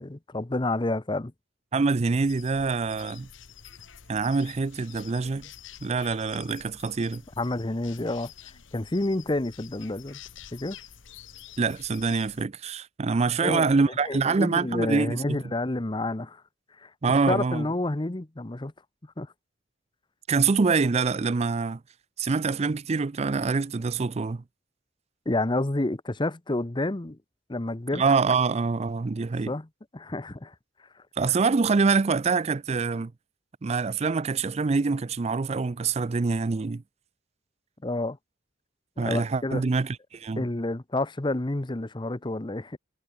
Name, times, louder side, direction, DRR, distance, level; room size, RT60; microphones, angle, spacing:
voice 1, 0.0-1.3 7.4-8.3 8.7-10.2 10.5-10.8 13.4-13.7 14.0-16.4 16.8-16.9 17.3-18.7 19.2-19.3 25.3-27.2 27.5-28.0 29.5-29.7 29.9-30.5 37.8-38.2 39.0-39.6 40.4-42.8, left 2 dB, 25° left, 0.8 m, -29 dB
voice 2, 1.7-3.3 4.1-5.5 5.8-7.2 11.6-15.4 17.0-17.7 20.3-21.8 22.2-24.4 27.9-29.5 31.2-33.1 33.6-36.8 39.0-40.4, right 4 dB, 35° right, 0.4 m, -25 dB
sound 1, 2.2-12.5, left 9 dB, 90° left, 1.4 m, -48 dB
head